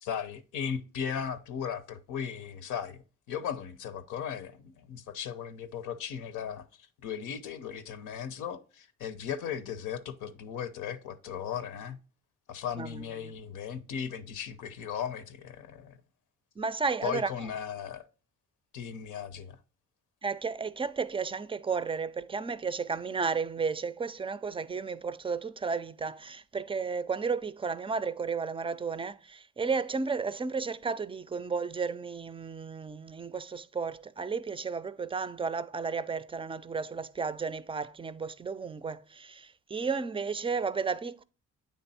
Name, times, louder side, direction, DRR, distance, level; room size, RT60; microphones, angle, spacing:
voice 1, 0.0-3.0 3.3-6.6 7.0-12.0 12.5-16.0 17.0-18.1 18.7-19.6, left 8 dB, 90° left, 0.7 m, -37 dB
voice 2, 12.8-13.4 16.6-17.5 20.2-41.2, right 5 dB, 20° right, 0.4 m, -33 dB
8.5 x 3.5 x 4.1 m
cardioid pair, 90°, 30 cm